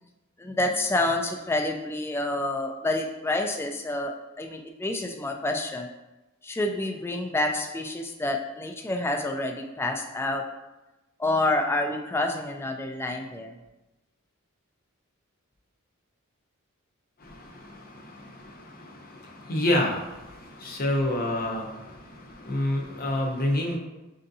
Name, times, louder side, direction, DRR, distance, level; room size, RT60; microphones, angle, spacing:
voice 1, 0.4-5.9 6.4-10.4 11.2-13.6, left 2 dB, 10° left, 3 dB, 0.3 m, -28 dB
voice 2, 17.2-23.8, left 1 dB, 45° left, 0 dB, 0.7 m, -29 dB
6.4 x 2.6 x 2.6 m, 1.0 s
head